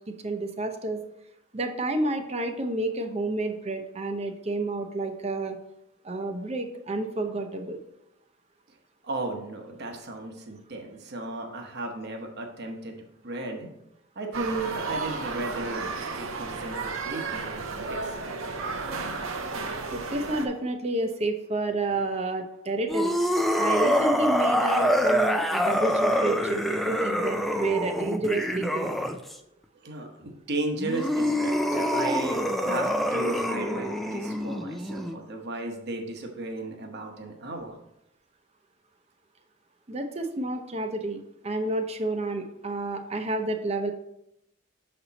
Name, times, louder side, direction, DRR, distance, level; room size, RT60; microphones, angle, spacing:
voice 1, 0.1-1.0 1.5-5.6 6.0-7.8 19.9-23.2 23.6-28.9 32.0-32.2 39.9-43.9, right 2 dB, 30° right, 6 dB, 0.7 m, -30 dB
voice 2, 9.0-13.7 14.1-18.2 29.8-32.4 32.6-37.8, right 2 dB, 55° right, 3 dB, 1.0 m, -35 dB
sound 1, 14.3-20.5, right 4 dB, 80° right, 0.7 m, -33 dB
sound 2, 22.9-29.4 30.8-35.1, equal, ahead, 0.3 m, -26 dB
6.7 x 4.3 x 4.0 m, 0.82 s
head